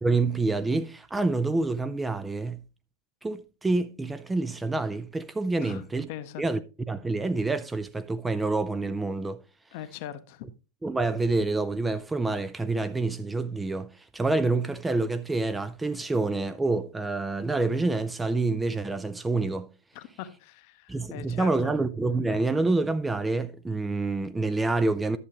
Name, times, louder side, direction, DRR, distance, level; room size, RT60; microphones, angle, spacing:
voice 1, 0.0-2.6 3.2-6.1 6.4-6.6 6.9-9.4 10.8-19.7 20.9-25.2, right 3 dB, 10° right, 0.4 m, -27 dB
voice 2, 6.1-6.4 9.7-10.5 19.9-21.7, left 11 dB, 45° left, 0.8 m, -41 dB
11.0 x 7.3 x 3.0 m
figure-of-eight pair, 90°, 0 cm